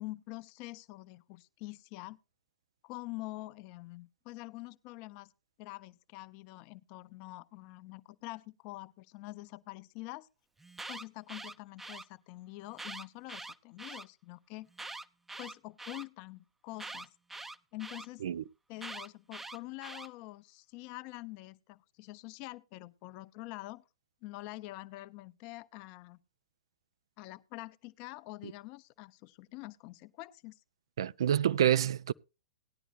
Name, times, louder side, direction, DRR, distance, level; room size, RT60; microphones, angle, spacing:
voice 1, 0.0-2.2 2.8-5.3 5.6-10.3 10.9-14.7 15.4-17.1 17.7-18.2 18.7-23.9 24.2-26.2 27.2-30.6, left 20 dB, 40° left, 0.7 m, -46 dB
Alarm, 10.6-12.0 12.7-14.0 14.7-16.0 16.8-18.1 18.8-20.1, right 2 dB, 5° right, 0.6 m, -44 dB
voice 2, 31.0-32.1, right 10 dB, 60° right, 0.5 m, -27 dB
18.0 x 11.0 x 2.5 m
figure-of-eight pair, 100°, 3 cm